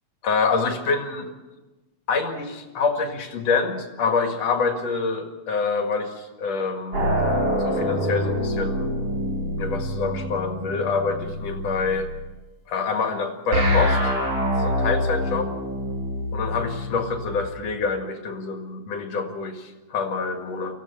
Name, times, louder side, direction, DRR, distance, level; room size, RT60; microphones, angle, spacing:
voice 1, 0.2-1.3 2.1-7.2 7.6-8.9 9.6-12.1 12.7-14.1 14.6-15.5 16.3-20.8, left 4 dB, 60° left, 5 dB, 3.0 m, -26 dB
sound 1, 6.9-12.2 13.5-17.4, equal, 55° right, 6.6 m, -25 dB
24.5 x 16.0 x 7.1 m, 1.1 s
omnidirectional pair, 3.3 m